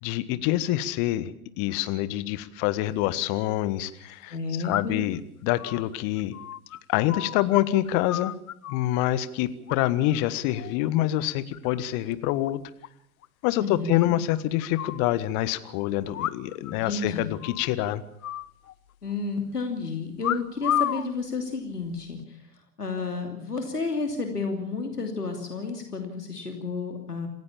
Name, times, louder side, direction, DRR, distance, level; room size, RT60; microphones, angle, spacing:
voice 1, 0.0-4.3 4.6-6.4 6.9-8.3 8.7-12.6 13.4-18.0, left 14 dB, 40° left, 15 dB, 1.5 m, -26 dB
sound 1, 2.9-3.0 4.7-5.2 5.6-7.6 7.9-8.9 9.7-10.2 10.5-10.9 11.3-11.8 12.1-12.2 12.4-12.5 12.8-12.9 13.2-13.3 14.0-15.0 16.1-16.7 17.0-17.1 17.4-17.7 18.2-19.1 20.2-21.1 21.8-22.2, left 12 dB, 65° left, 1.0 m, -32 dB
voice 2, 4.3-5.0 13.6-14.1 16.8-17.3 19.0-22.4 22.8-27.3, left 4 dB, 85° left, 4 dB, 3.0 m, -31 dB
27.5 x 15.5 x 7.3 m, 0.72 s
figure-of-eight pair, 90°, 45 cm